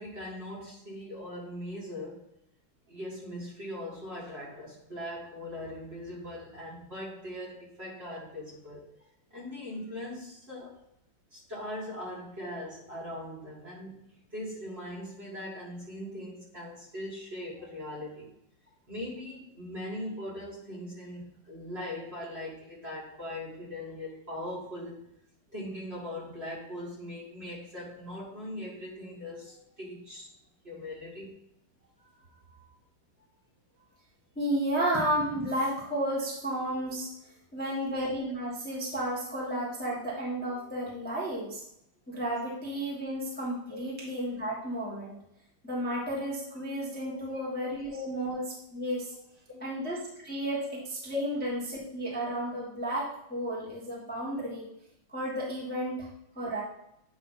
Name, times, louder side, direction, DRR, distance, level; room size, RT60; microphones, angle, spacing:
voice 1, 0.0-2.2 2.9-8.9 9.3-10.8 11.3-14.0 14.3-18.3 18.9-25.0 25.5-30.3 30.6-31.3 43.7-43.8 47.1-47.4 47.9-48.1 49.5-49.6 51.1-51.2 56.4-56.5, left 1 dB, 30° right, -6 dB, 1.8 m, -40 dB
voice 2, 34.3-41.6 42.1-45.2 45.6-48.4 48.7-49.1 49.6-54.7 55.1-56.1 56.3-56.6, right 1 dB, 5° left, -6 dB, 1.2 m, -32 dB
8.5 x 2.9 x 5.6 m, 0.78 s
omnidirectional pair, 2.4 m